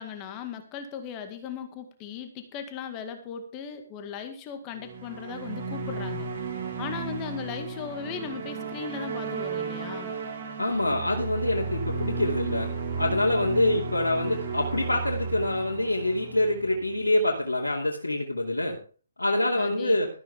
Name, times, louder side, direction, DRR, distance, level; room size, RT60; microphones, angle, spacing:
voice 1, 0.0-6.3 6.8-10.1 19.6-20.0, left 6 dB, 25° left, 6 dB, 1.9 m, -37 dB
sound 1, 4.7-17.2, right 4 dB, 50° right, 4.6 m, -34 dB
voice 2, 10.6-12.7 13.0-18.8 19.2-20.1, left 1 dB, 80° left, -4 dB, 2.7 m, -25 dB
13.5 x 12.5 x 3.6 m, 0.39 s
figure-of-eight pair, 135°, 0 cm